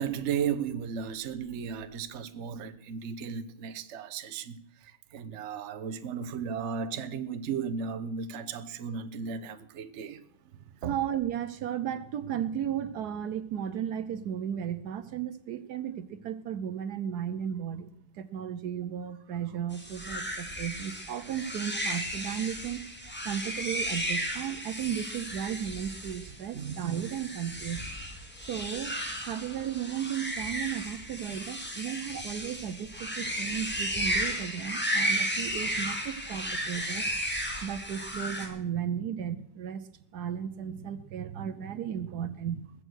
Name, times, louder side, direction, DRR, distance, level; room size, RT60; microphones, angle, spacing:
voice 1, 0.0-10.2 10.8-10.9 26.5-27.0, right 7 dB, 50° right, 1.0 m, -35 dB
voice 2, 10.8-22.8 23.2-27.9 28.5-28.9 29.2-37.1 37.6-39.8 40.1-42.7, right 9 dB, 70° right, 1.3 m, -35 dB
sound 1, 19.7-38.5, equal, 5° left, 2.4 m, -34 dB
21.0 x 7.7 x 6.2 m
omnidirectional pair, 1.8 m